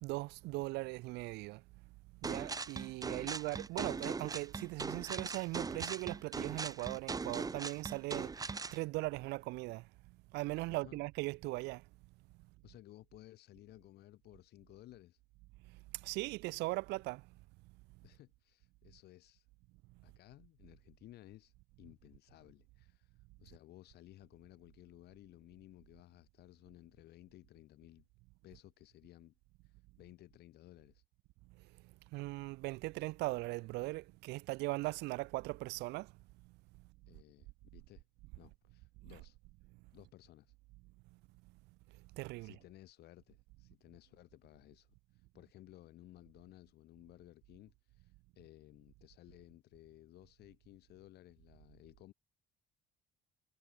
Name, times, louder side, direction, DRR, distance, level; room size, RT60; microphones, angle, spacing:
voice 1, 0.0-1.6 2.2-9.9 10.3-11.8 15.9-17.3 32.1-36.1 39.0-39.2 42.1-42.6, right 22 dB, 85° right, 0.4 m, -39 dB
sound 1, 2.2-8.8, right 4 dB, 20° right, 1.3 m, -40 dB
voice 2, 10.7-11.0 12.6-15.2 18.0-19.5 20.0-28.0 28.4-29.3 29.6-31.0 37.1-38.0 38.4-39.4 39.9-40.5 42.4-52.1, left 15 dB, 75° left, 2.6 m, -58 dB
cardioid pair, 110°, 17 cm